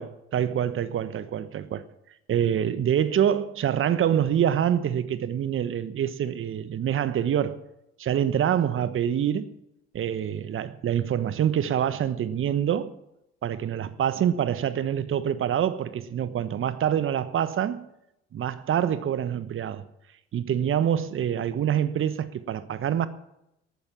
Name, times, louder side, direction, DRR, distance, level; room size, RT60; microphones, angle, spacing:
voice 1, 0.0-1.8 2.3-7.6 8.0-9.5 9.9-13.0 13.4-17.8 18.3-19.8 20.3-23.1, right 9 dB, 40° right, 1.1 m, -26 dB
18.5 x 9.4 x 7.3 m
figure-of-eight pair, 55°, 31 cm